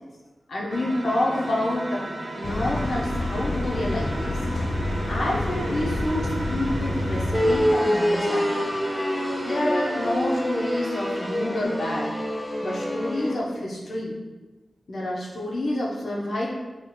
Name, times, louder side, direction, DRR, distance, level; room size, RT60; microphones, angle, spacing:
voice 1, 0.5-2.0 2.3-4.7 5.1-8.6 9.4-12.1 12.6-14.1 14.9-16.5, left 1 dB, 85° left, -3 dB, 1.3 m, -28 dB
sound 1, 0.7-11.6, right 1 dB, 50° right, 0.9 m, -36 dB
sound 2, 2.4-7.6, left 1 dB, 60° left, 0.7 m, -28 dB
sound 3, 7.3-13.3, equal, 10° left, 0.8 m, -26 dB
6.5 x 3.4 x 4.4 m, 1.2 s
wide cardioid pair, 100°, 0 cm